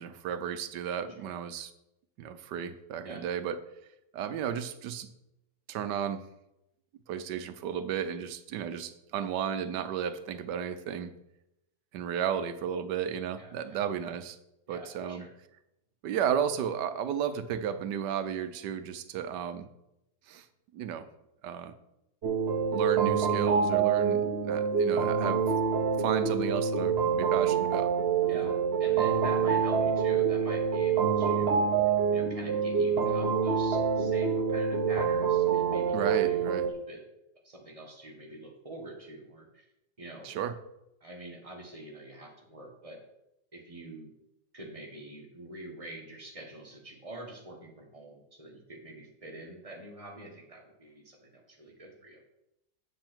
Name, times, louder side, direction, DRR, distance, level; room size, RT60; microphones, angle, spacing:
voice 1, 0.0-1.7 2.2-3.6 4.1-5.1 5.7-6.2 7.1-11.1 11.9-14.4 14.7-15.3 16.0-19.7 20.3-20.5 20.7-21.1 21.4-21.7 22.7-25.4 26.0-27.9 28.3-28.5 35.9-36.7 40.2-40.6, right 8 dB, 80° right, 12 dB, 1.3 m, -33 dB
voice 2, 13.4-13.8 14.7-15.3 28.3-31.6 32.1-36.0 36.2-37.0 37.4-39.6 40.0-40.3 41.0-43.0 43.5-44.1 44.5-52.2, right 1 dB, 20° right, 1 dB, 1.7 m, -45 dB
sound 1, 22.2-36.7, right 6 dB, 45° right, 1.0 m, -26 dB
8.0 x 7.6 x 4.5 m, 0.86 s
omnidirectional pair, 1.8 m